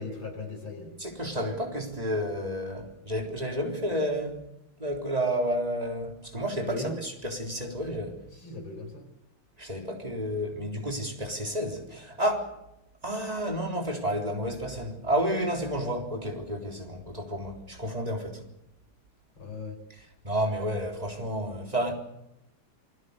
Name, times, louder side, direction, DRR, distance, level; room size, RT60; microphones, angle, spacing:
voice 1, 0.0-0.9 6.6-7.0 8.4-9.0 19.4-19.8, left 3 dB, 65° left, 5.9 m, -37 dB
voice 2, 1.0-4.4 4.8-8.2 9.6-12.5 13.0-18.4 19.9-21.9, equal, 15° right, 3.8 m, -31 dB
28.0 x 20.0 x 6.9 m
omnidirectional pair, 2.4 m